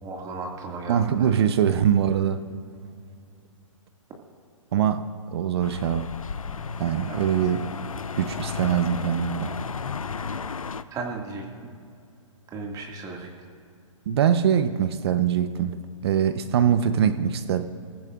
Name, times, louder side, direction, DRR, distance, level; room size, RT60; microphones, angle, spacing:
voice 1, 0.0-1.3 7.1-7.3 10.9-11.7 12.5-13.3, right 3 dB, 20° right, 0 dB, 2.1 m, -35 dB
voice 2, 0.9-2.5 4.7-6.1 6.8-7.6 8.1-9.6 14.1-15.8 16.0-17.6, right 9 dB, 50° right, 11 dB, 0.8 m, -23 dB
sound 1, 5.6-10.8, left 5 dB, 85° left, 0.6 m, -33 dB
27.0 x 15.0 x 2.5 m, 2.3 s
figure-of-eight pair, 125°, 17 cm